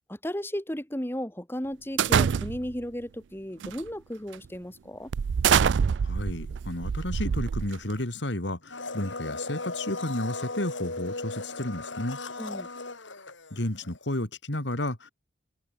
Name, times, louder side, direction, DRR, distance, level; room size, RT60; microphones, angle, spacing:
voice 1, 0.1-5.1 12.4-12.7, equal, 10° left, 1.8 m, -35 dB
sound 1, 2.0-2.8 3.6-3.9 4.3-4.5 5.1-8.0, right 7 dB, 75° right, 0.4 m, -25 dB
voice 2, 6.0-12.2 13.5-15.1, left 1 dB, 70° left, 3.3 m, -32 dB
Domestic sounds home sounds, 8.7-14.0 14.2-14.3, left 3 dB, 90° left, 7.9 m, -37 dB
open air
head